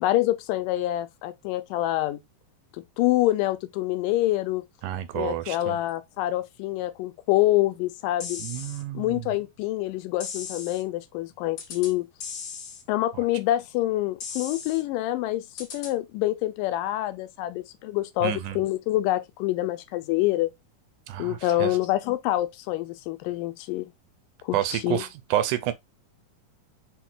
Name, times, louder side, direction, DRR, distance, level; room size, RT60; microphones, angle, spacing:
voice 1, 0.0-2.2 3.0-4.6 5.2-8.4 8.9-12.1 12.9-20.5 21.2-23.9 24.4-25.0, left 15 dB, 85° left, 2.2 m, -26 dB
voice 2, 4.8-5.8 8.4-9.3 13.1-13.2 18.2-18.6 21.1-21.8 24.5-25.7, right 13 dB, 80° right, 1.8 m, -29 dB
sound 1, 8.2-8.8 10.2-10.8 11.6-11.9 12.2-12.8 14.2-14.8 15.6-15.9, left 6 dB, 60° left, 2.1 m, -37 dB
5.9 x 2.4 x 3.6 m
omnidirectional pair, 3.9 m